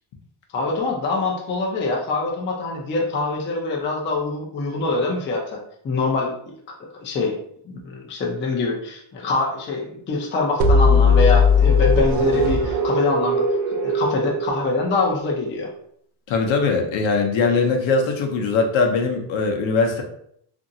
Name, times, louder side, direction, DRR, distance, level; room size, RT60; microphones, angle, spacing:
voice 1, 0.5-5.6 5.8-6.7 7.0-7.4 7.6-15.7, left 3 dB, 25° left, -2 dB, 0.4 m, -24 dB
sound 1, 10.6-15.3, left 3 dB, 85° right, 0.6 m, -18 dB
voice 2, 16.3-20.0, left 4 dB, 65° left, 3 dB, 0.7 m, -21 dB
2.8 x 2.6 x 2.6 m, 0.69 s
cardioid pair, 155°, 49 cm